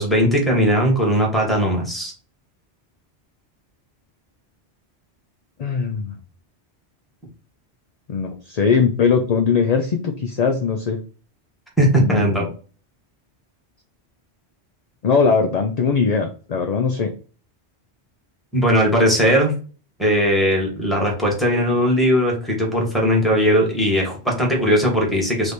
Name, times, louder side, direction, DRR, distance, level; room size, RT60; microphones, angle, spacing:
voice 1, 0.0-2.1 11.8-12.5 18.5-19.5 20.0-25.5, equal, ahead, -2 dB, 1.4 m, -18 dB
voice 2, 5.6-6.1 8.1-11.0 11.9-12.5 15.0-17.1, left 5 dB, 50° left, 5 dB, 0.5 m, -20 dB
3.3 x 3.1 x 4.1 m, 0.38 s
omnidirectional pair, 1.1 m